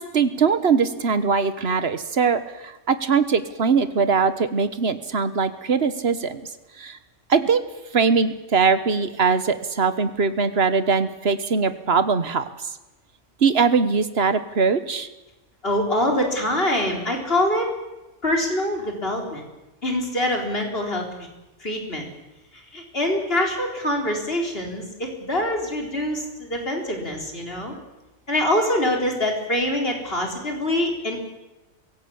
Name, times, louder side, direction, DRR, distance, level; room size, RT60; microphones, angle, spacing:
voice 1, 0.0-6.4 6.8-7.0 7.3-7.6 7.9-12.4 13.4-15.1, right 5 dB, 55° right, 12 dB, 1.5 m, -21 dB
voice 2, 15.6-17.7 18.2-19.4 19.8-21.1 21.6-22.1 22.5-27.7 28.3-31.2, left 1 dB, 50° left, 1 dB, 4.5 m, -24 dB
22.5 x 17.0 x 8.7 m, 1.0 s
omnidirectional pair, 1.3 m